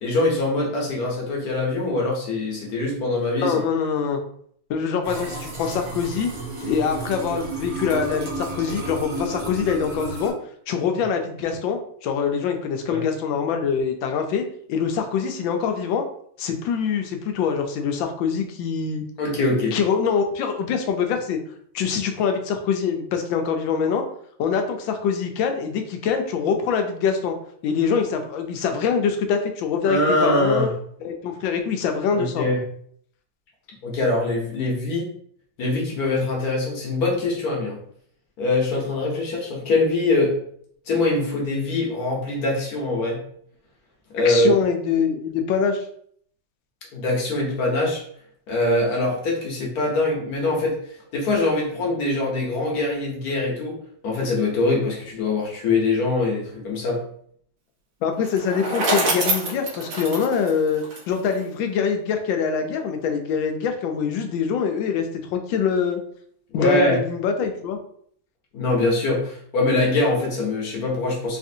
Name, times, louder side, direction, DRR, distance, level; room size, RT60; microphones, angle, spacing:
voice 1, 0.0-3.5 12.9-13.0 19.2-19.7 29.8-30.7 32.1-32.6 33.8-35.1 35.6-37.8 38.4-40.4 40.9-43.2 44.1-44.5 46.9-48.0 48.5-50.7 51.1-53.8 54.0-57.0 66.5-67.0 68.5-71.4, left 2 dB, 60° left, -2 dB, 1.2 m, -23 dB
voice 2, 3.4-4.2 4.7-6.3 6.6-10.3 10.7-14.4 14.7-16.0 16.4-19.0 19.7-21.4 21.7-24.0 24.4-27.3 27.6-30.7 31.0-32.5 44.2-45.8 58.0-66.0 66.5-67.8, left 6 dB, 85° left, 5 dB, 1.3 m, -24 dB
sound 1, 5.0-10.3, right 2 dB, 40° right, 1.0 m, -32 dB
Bicycle, 58.2-61.4, right 2 dB, 85° right, 1.7 m, -26 dB
4.1 x 2.5 x 2.6 m, 0.63 s
omnidirectional pair, 2.1 m